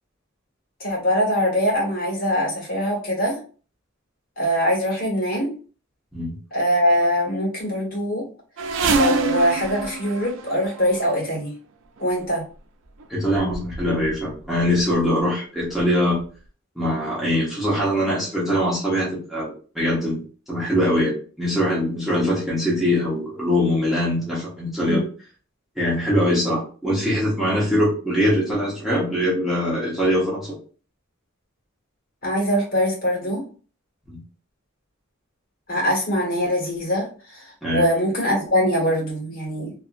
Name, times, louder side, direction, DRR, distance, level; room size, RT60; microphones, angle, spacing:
voice 1, 0.8-3.4 4.4-5.5 6.5-8.3 8.9-11.5 12.0-12.4 24.9-25.0 32.2-33.4 35.7-39.7, equal, 45° left, -3 dB, 1.5 m, -22 dB
sound 1, 8.6-11.0 12.0-12.2 13.0-13.1 13.3-14.2 14.5-15.1 15.8-15.9 16.2-16.3, right 3 dB, 65° right, 0.4 m, -26 dB
voice 2, 13.1-16.2 16.8-20.2 20.5-25.1 25.8-30.6 34.1-34.2 37.6-37.8, equal, ahead, -8 dB, 1.0 m, -22 dB
2.7 x 2.6 x 2.5 m, 0.39 s
head